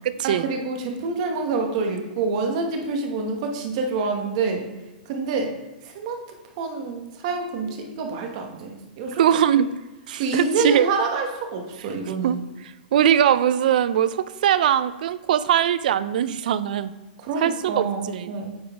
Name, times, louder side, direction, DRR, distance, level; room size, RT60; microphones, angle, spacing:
voice 1, 0.2-4.7 5.1-5.5 5.8-6.2 6.6-9.2 9.5-9.6 10.2-12.4 17.2-18.6, right 4 dB, 35° right, 3 dB, 1.0 m, -27 dB
voice 2, 9.2-9.7 10.1-10.9 12.1-12.4 12.9-16.9 17.4-18.3, right 10 dB, 55° right, 15 dB, 0.3 m, -21 dB
8.7 x 3.9 x 3.5 m, 1.1 s
hypercardioid pair, 170°, 5 cm